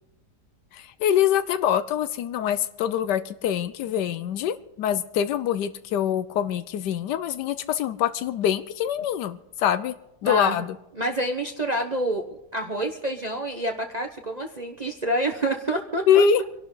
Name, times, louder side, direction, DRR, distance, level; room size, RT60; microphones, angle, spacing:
voice 1, 0.7-9.9 10.2-10.8 16.1-16.4, left 9 dB, 85° left, 12 dB, 1.3 m, -24 dB
voice 2, 10.2-10.7 11.0-16.2, right 1 dB, 30° right, 3 dB, 1.0 m, -28 dB
26.0 x 11.5 x 3.9 m, 0.88 s
omnidirectional pair, 1.8 m